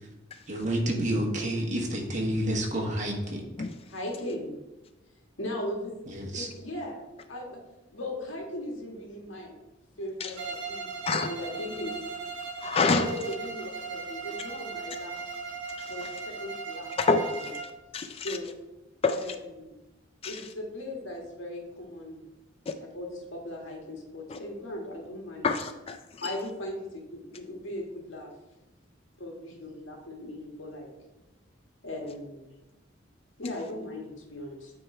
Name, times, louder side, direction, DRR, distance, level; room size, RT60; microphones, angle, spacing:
voice 1, 0.5-3.4 6.1-6.5, right 1 dB, 40° right, 1.3 m, -29 dB
voice 2, 3.9-4.6 5.4-6.0 6.3-7.0 7.3-7.6 7.9-9.6 10.0-11.9 12.9-15.2 15.9-16.9 17.4-17.5 18.2-18.5 19.1-19.7 20.2-22.2 22.8-25.5 26.2-28.3 29.2-30.9 31.8-32.5 33.4-34.7, left 1 dB, 90° left, 1.7 m, -38 dB
Bowed string instrument, 10.4-17.8, right 5 dB, 80° right, 1.2 m, -38 dB
voice 3, 12.6-13.1 15.8-15.9 17.0-17.4 17.9-18.4 19.0-19.2 20.2-20.4 22.7-22.8 24.3-24.4 25.4-26.0 26.2-26.3 33.4-33.5, left 4 dB, 30° left, 0.3 m, -26 dB
8.5 x 3.6 x 4.3 m
head